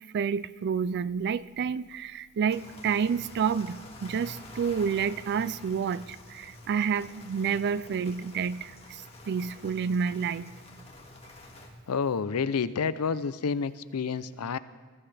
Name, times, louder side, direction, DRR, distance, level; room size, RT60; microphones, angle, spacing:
voice 1, 0.1-10.5, right 6 dB, 50° right, 18 dB, 0.4 m, -29 dB
sound 1, 2.5-11.7, left 2 dB, 30° left, 1.9 m, -48 dB
voice 2, 11.9-14.6, left 5 dB, 85° left, 15 dB, 0.5 m, -29 dB
20.0 x 14.0 x 3.4 m, 1.4 s
head